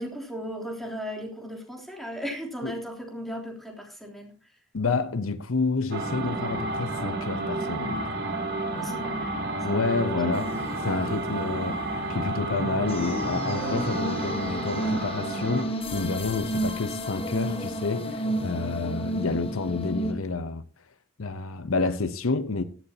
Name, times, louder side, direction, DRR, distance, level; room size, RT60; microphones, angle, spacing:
voice 1, 0.0-4.6 8.7-10.1 10.5-10.7, equal, ahead, 3.3 m, -37 dB
voice 2, 4.7-8.1 9.6-11.8 12.1-20.6 21.2-22.6, left 3 dB, 80° left, 0.9 m, -29 dB
sound 1, 5.9-15.7, right 2 dB, 50° right, 3.3 m, -31 dB
sound 2, 10.3-20.1, equal, 25° left, 1.5 m, -33 dB
16.5 x 12.5 x 2.9 m
head